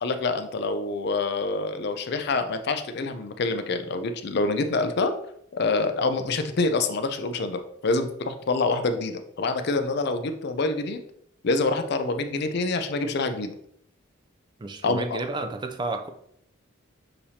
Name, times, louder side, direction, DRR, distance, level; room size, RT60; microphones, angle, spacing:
voice 1, 0.0-5.1 5.5-11.0 11.4-13.5 14.8-15.2, left 3 dB, 50° left, 8 dB, 0.4 m, -26 dB
voice 2, 14.6-16.1, right 2 dB, 20° right, 5 dB, 0.3 m, -31 dB
6.5 x 2.9 x 2.8 m, 0.72 s
head